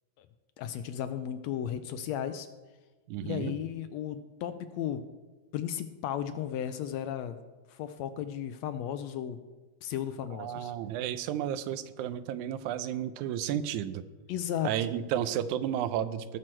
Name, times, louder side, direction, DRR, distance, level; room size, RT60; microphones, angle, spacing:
voice 1, 0.6-2.5 3.2-5.0 5.5-7.4 7.7-9.4 9.8-10.7 14.3-14.7, left 10 dB, 80° left, 10 dB, 1.6 m, -35 dB
voice 2, 3.1-3.5 10.3-14.1 14.6-16.4, right 10 dB, 85° right, 13 dB, 2.0 m, -32 dB
18.0 x 6.2 x 4.4 m, 1.3 s
omnidirectional pair, 3.3 m